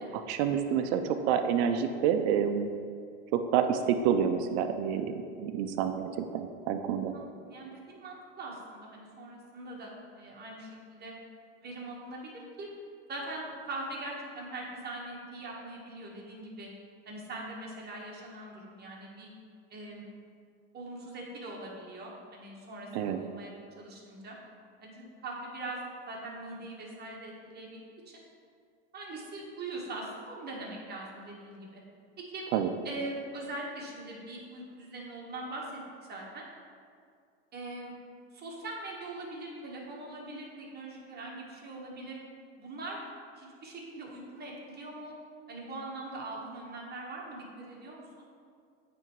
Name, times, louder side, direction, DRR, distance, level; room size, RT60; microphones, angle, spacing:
voice 1, 0.1-2.7 3.3-5.1 5.4-7.1 22.9-23.2 32.5-32.7, right 8 dB, 70° right, 7 dB, 0.5 m, -28 dB
voice 2, 7.1-11.2 11.6-12.7 13.1-16.7 17.0-19.3 19.7-20.1 20.7-24.4 24.8-28.2 28.9-31.8 32.2-32.5 32.8-35.8 36.1-36.4 37.5-37.9 38.3-42.2 42.6-43.0 43.3-45.1 45.5-48.0, right 2 dB, 30° right, -2 dB, 1.4 m, -42 dB
8.8 x 3.4 x 3.1 m, 2.2 s
supercardioid pair, 110°, 32 cm